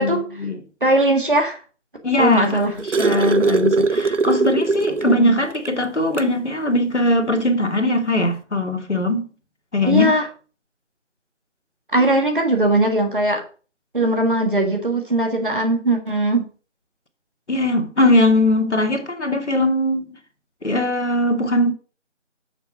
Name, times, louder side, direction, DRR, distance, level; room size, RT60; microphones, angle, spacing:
voice 1, 0.0-0.6 2.0-9.3 9.7-10.2 17.5-20.1 20.6-21.7, left 1 dB, 70° left, 1.4 m, -20 dB
voice 2, 0.8-1.6 2.2-2.7 5.1-5.4 9.8-10.2 11.9-13.4 13.9-16.4, right 1 dB, 45° right, 1.7 m, -19 dB
sound 1, 2.3-5.3 5.7-5.8 6.1-6.4 7.5-7.6, right 4 dB, 75° right, 0.8 m, -20 dB
6.9 x 4.4 x 5.3 m
figure-of-eight pair, 170°, 37 cm